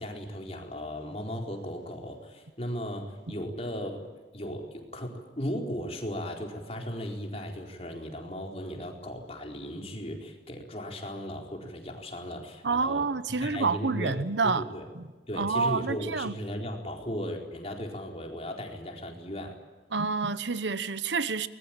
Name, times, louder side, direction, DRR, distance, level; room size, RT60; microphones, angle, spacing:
voice 1, 0.0-4.0 4.3-14.2 14.4-14.9 15.3-19.6, equal, 35° left, 4.4 m, -36 dB
voice 2, 12.6-14.6 14.9-15.0 15.4-16.3 19.9-21.5, right 4 dB, 90° right, 1.0 m, -28 dB
24.0 x 21.0 x 9.0 m
head